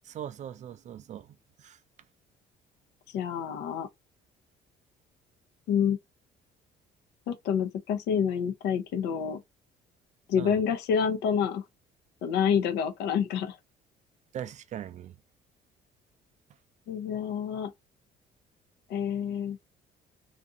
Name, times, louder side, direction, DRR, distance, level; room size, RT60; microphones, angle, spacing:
voice 1, 0.0-1.8 10.4-10.6 14.3-15.1, right 10 dB, 45° right, 0.4 m, -40 dB
voice 2, 3.1-3.9 5.7-6.0 7.3-9.4 10.3-11.6 12.2-13.6 16.9-17.7 18.9-19.6, left 7 dB, 80° left, 0.6 m, -28 dB
2.6 x 2.5 x 2.4 m
cardioid pair, 110°, 17 cm